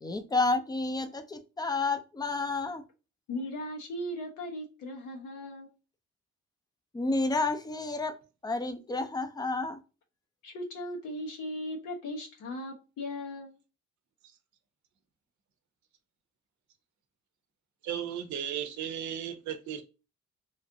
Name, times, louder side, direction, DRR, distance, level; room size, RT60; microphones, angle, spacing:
voice 1, 0.0-2.8 6.9-9.8, left 3 dB, 15° left, 0.5 m, -30 dB
voice 2, 3.3-5.7 10.4-13.5, left 1 dB, 90° left, 1.0 m, -38 dB
voice 3, 17.8-19.8, right 9 dB, 70° right, 0.6 m, -35 dB
3.1 x 2.5 x 2.7 m
cardioid pair, 90°, 30 cm